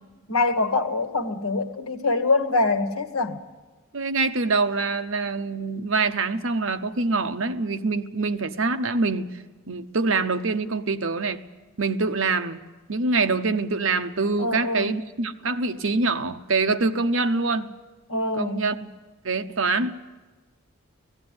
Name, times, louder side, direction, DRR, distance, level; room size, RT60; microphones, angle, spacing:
voice 1, 0.3-3.4 14.4-14.9 18.1-18.6, left 3 dB, 90° left, 6 dB, 1.5 m, -24 dB
voice 2, 3.9-9.3 9.7-11.4 11.8-12.6 12.9-17.7 18.4-18.9 19.2-20.0, right 3 dB, 70° right, 9 dB, 0.9 m, -25 dB
17.5 x 16.0 x 9.6 m, 1.3 s
head